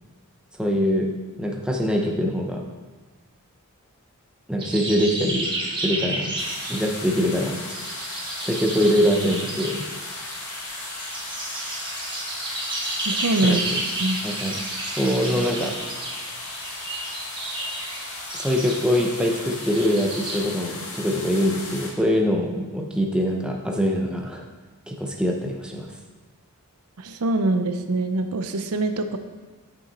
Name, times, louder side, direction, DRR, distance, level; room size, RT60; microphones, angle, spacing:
voice 1, 0.6-1.1 1.4-2.6 4.5-5.5 5.8-6.4 6.7-7.6 8.4-9.9 13.4-13.6 14.2-14.5 14.8-15.8 18.3-24.4 24.9-25.9, equal, 5° right, 0 dB, 0.8 m, -23 dB
sound 1, 4.6-20.4, right 2 dB, 20° right, 1.3 m, -32 dB
sound 2, 6.4-21.9, left 2 dB, 85° left, 1.9 m, -36 dB
voice 2, 13.1-13.6 14.0-14.2 27.0-29.2, right 2 dB, 85° right, 8 dB, 0.6 m, -24 dB
8.3 x 6.3 x 4.1 m, 1.3 s
head